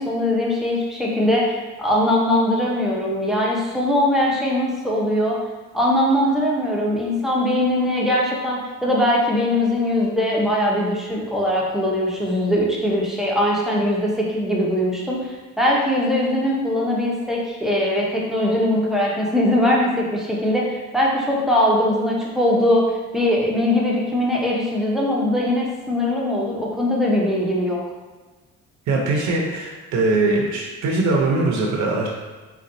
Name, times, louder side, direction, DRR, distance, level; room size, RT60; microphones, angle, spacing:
voice 1, 0.0-5.4 5.7-15.3 15.6-22.9 23.1-27.8, left 1 dB, ahead, -4 dB, 0.7 m, -21 dB
voice 2, 28.9-32.1, right 2 dB, 75° right, -2 dB, 0.7 m, -21 dB
4.1 x 2.3 x 2.6 m, 1.3 s
cardioid pair, 90°, 30 cm